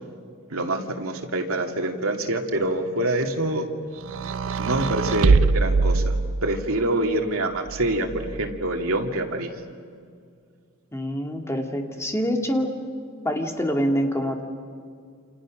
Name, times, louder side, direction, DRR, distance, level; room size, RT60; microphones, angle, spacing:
voice 1, 0.5-3.7 4.6-9.5, right 1 dB, 85° right, 3 dB, 2.5 m, -26 dB
sound 1, 4.0-6.8 7.7-8.6, right 4 dB, 65° right, 0.6 m, -23 dB
voice 2, 10.9-12.8 13.2-14.4, equal, 15° left, 3 dB, 2.2 m, -25 dB
28.5 x 28.0 x 6.4 m, 2.2 s
head